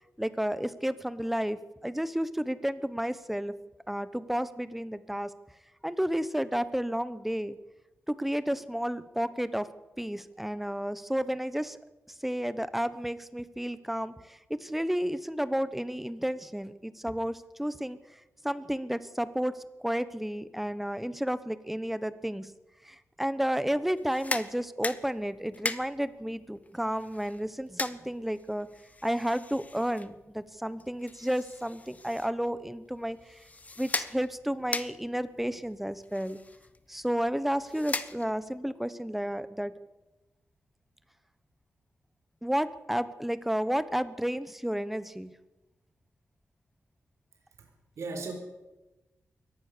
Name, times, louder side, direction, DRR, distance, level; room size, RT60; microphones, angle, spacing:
voice 1, 0.2-3.5 3.9-5.3 5.8-7.6 8.1-9.7 10.0-11.8 12.2-18.0 18.4-22.5 22.8-28.7 29.0-33.4 33.8-36.4 36.9-39.7 42.4-45.3, equal, 5° right, 14 dB, 1.1 m, -32 dB
sound 1, 23.9-38.6, left 3 dB, 30° left, 1.1 m, -40 dB
voice 2, 47.3-48.3, right 3 dB, 80° right, 3 dB, 4.5 m, -39 dB
23.0 x 18.5 x 6.8 m, 1.1 s
wide cardioid pair, 125°, 5 cm